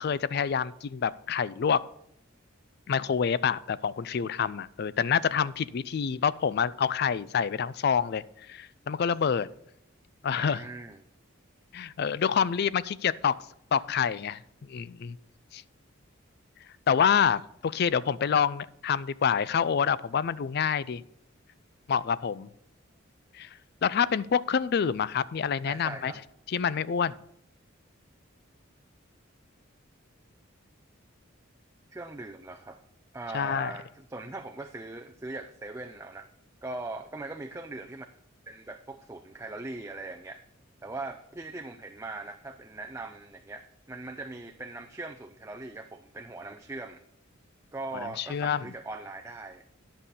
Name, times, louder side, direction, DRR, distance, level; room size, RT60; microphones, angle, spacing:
voice 1, 0.0-1.8 2.9-9.5 10.2-10.6 11.7-13.4 13.7-14.4 14.7-15.2 15.5-15.6 16.9-21.0 21.9-22.5 23.3-23.5 23.8-26.1 26.5-27.2 33.3-33.7 48.0-48.6, left 7 dB, 50° left, 0.4 m, -27 dB
voice 2, 10.3-11.0 25.6-26.2 31.9-32.8 33.1-36.3 36.6-38.1 38.5-40.4 40.8-47.0 47.7-49.6, right 2 dB, 15° right, 0.5 m, -40 dB
10.5 x 5.6 x 6.7 m
head